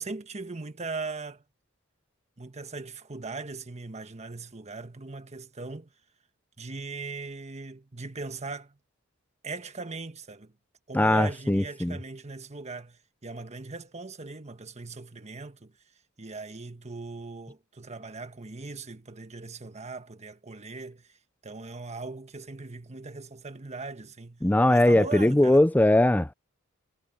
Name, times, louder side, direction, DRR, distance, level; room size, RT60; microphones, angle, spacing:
voice 1, 0.0-1.4 2.4-5.9 6.6-8.8 9.4-10.5 10.9-15.8 16.2-21.2 21.4-24.4 24.7-25.6, right 3 dB, 35° right, 1.3 m, -39 dB
voice 2, 10.9-12.0 24.4-26.3, left 1 dB, 10° left, 0.5 m, -20 dB
head